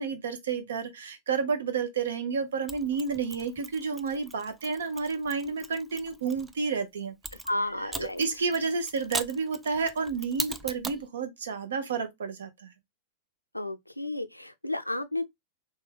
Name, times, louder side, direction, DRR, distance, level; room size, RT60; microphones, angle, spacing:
voice 1, 0.0-7.1 8.2-12.7, right 5 dB, 65° right, 0.8 m, -30 dB
Mechanisms, 2.7-6.5 7.2-11.1, right 3 dB, 10° right, 0.4 m, -40 dB
voice 2, 7.5-8.5 13.5-15.2, left 1 dB, 90° left, 0.4 m, -32 dB
3.3 x 3.2 x 3.2 m
figure-of-eight pair, 90°, 0 cm